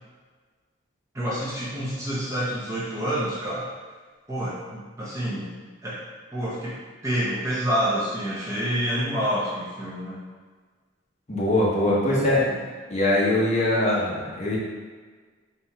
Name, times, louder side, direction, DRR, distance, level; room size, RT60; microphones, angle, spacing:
voice 1, 1.1-3.7 4.3-5.6 5.8-6.0 6.3-6.8 7.0-10.2 11.9-12.2, equal, 15° right, -9 dB, 0.9 m, -28 dB
voice 2, 11.3-12.5 12.9-14.6, left 1 dB, 40° left, -5 dB, 1.1 m, -22 dB
4.3 x 2.6 x 4.5 m, 1.5 s
head